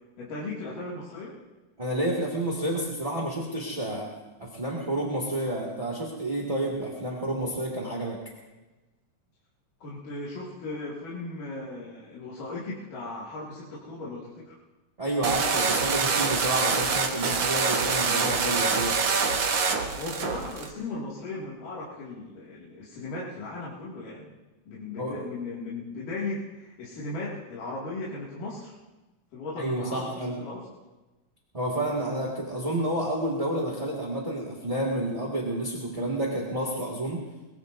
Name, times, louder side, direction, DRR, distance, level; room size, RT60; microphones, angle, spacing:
voice 1, 0.2-1.4 9.8-14.6 19.7-24.3 24.7-28.7 29.3-30.6, left 2 dB, 75° left, -7 dB, 4.0 m, -37 dB
voice 2, 1.8-4.1 4.4-8.1 15.0-18.9 25.0-25.2 29.6-30.4 31.5-37.2, right 1 dB, 15° right, -3 dB, 1.5 m, -30 dB
sound 1, 15.2-20.7, right 5 dB, 55° right, 1.3 m, -25 dB
22.5 x 22.0 x 2.7 m, 1.1 s
omnidirectional pair, 3.7 m